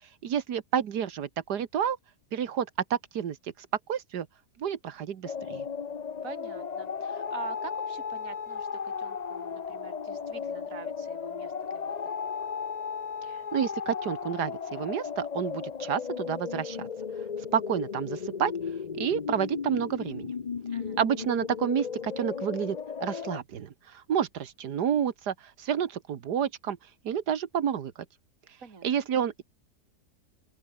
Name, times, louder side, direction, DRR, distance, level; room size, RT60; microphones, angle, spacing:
voice 1, 0.2-2.0 2.3-4.3 4.6-5.7 13.5-16.9 17.5-18.5 18.9-20.3 21.0-26.8 27.0-27.9 28.8-29.4, right 8 dB, 90° right, 1.9 m, -30 dB
sound 1, 5.2-23.4, left 6 dB, 40° left, 0.6 m, -35 dB
voice 2, 6.2-12.0 20.7-21.0 28.6-29.1, right 6 dB, 55° right, 2.9 m, -45 dB
open air
omnidirectional pair, 1.7 m